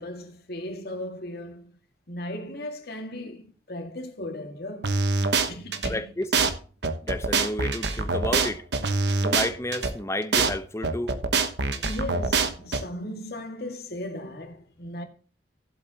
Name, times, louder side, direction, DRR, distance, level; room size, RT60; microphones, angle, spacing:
voice 1, 0.0-1.8 2.1-5.0 5.5-6.1 9.0-9.3 11.8-15.0, left 1 dB, 60° left, 2.0 m, -37 dB
sound 1, 4.8-5.9 6.3-6.5 6.8-9.9 10.3-10.5 10.8-12.8, right 4 dB, 70° right, 1.1 m, -24 dB
voice 2, 5.9-6.3 7.0-8.6 9.2-11.8, left 1 dB, 15° left, 0.9 m, -31 dB
15.0 x 8.0 x 2.9 m
head